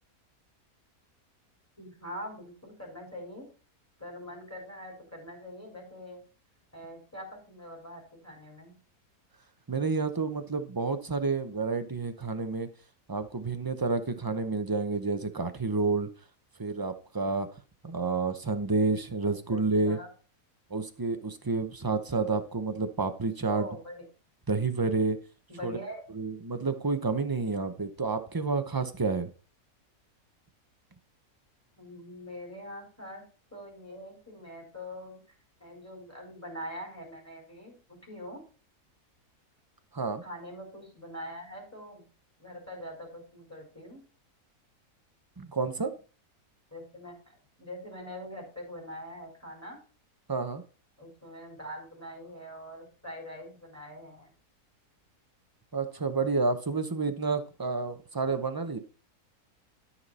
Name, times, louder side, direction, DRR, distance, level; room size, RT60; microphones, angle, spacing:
voice 1, 1.8-3.4 4.0-6.2 6.7-8.7 19.5-20.1 23.5-24.0 25.5-26.0 31.8-33.2 33.5-35.2 35.6-38.4 40.2-42.0 42.4-44.0 46.7-47.1 47.6-49.8 51.0-54.3, equal, 10° left, -1 dB, 4.5 m, -43 dB
voice 2, 9.7-12.7 13.1-16.1 16.6-17.5 17.8-20.0 20.7-23.7 24.5-25.2 25.6-25.8 26.1-29.3 39.9-40.2 45.4-45.9 50.3-50.6 55.7-58.8, right 3 dB, 25° right, 8 dB, 0.5 m, -29 dB
13.0 x 5.8 x 4.2 m, 0.37 s
omnidirectional pair, 1.6 m